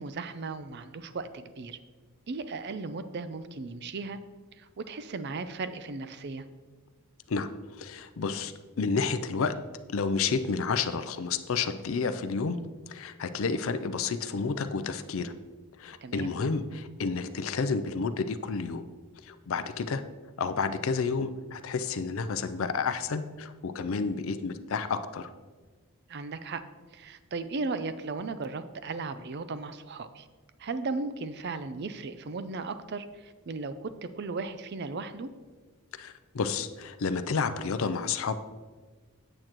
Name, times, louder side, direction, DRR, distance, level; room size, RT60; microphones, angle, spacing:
voice 1, 0.0-1.8 2.3-4.2 4.6-6.5 16.0-16.3 26.1-26.6 26.9-30.3 30.6-33.9 34.2-35.3, right 3 dB, 50° right, 12 dB, 0.5 m, -36 dB
voice 2, 7.8-9.5 9.9-12.6 12.9-15.3 15.8-18.8 19.2-20.0 20.4-25.3 36.0-38.3, left 5 dB, 65° left, 11 dB, 0.5 m, -30 dB
8.7 x 7.7 x 3.0 m, 1.4 s
head